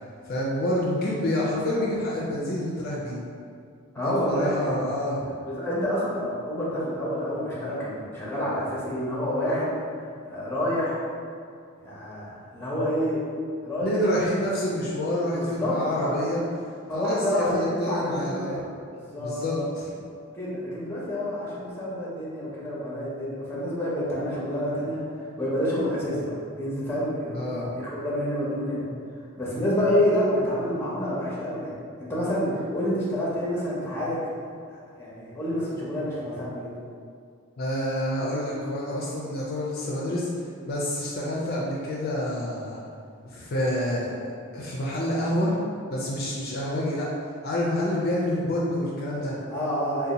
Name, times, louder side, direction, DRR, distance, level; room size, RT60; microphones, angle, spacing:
voice 1, 0.3-3.2 4.0-5.2 13.8-16.4 16.9-18.6 19.2-19.9 27.3-27.7 37.6-40.3 40.7-42.8 43.3-44.1 44.5-45.6 45.9-47.1 47.4-49.3, left 1 dB, 45° left, -5 dB, 0.4 m, -28 dB
voice 2, 3.9-4.7 5.4-9.8 10.3-11.0 11.8-13.2 13.6-14.0 15.3-16.2 16.9-18.6 18.9-19.7 20.3-25.1 25.4-27.4 27.7-28.8 29.4-31.7 32.0-34.2 35.0-36.7 49.5-50.1, equal, 10° left, -7 dB, 0.7 m, -28 dB
2.7 x 2.2 x 3.9 m, 2.3 s
head